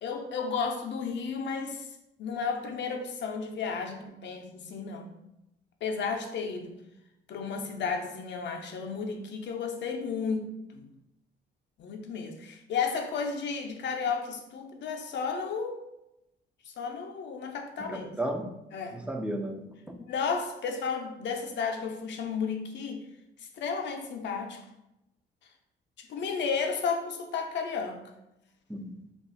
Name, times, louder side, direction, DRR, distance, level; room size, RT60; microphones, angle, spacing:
voice 1, 0.0-1.9 2.2-5.1 5.8-6.8 7.3-10.9 11.8-15.8 16.7-18.1 18.7-19.0 20.0-23.0 23.4-24.6 26.0-28.0, left 5 dB, 65° left, 4 dB, 0.5 m, -33 dB
voice 2, 17.8-18.5 18.9-20.0 28.7-29.0, right 1 dB, 5° right, 4 dB, 0.4 m, -34 dB
2.4 x 2.3 x 3.9 m, 0.89 s
cardioid pair, 90°, 20 cm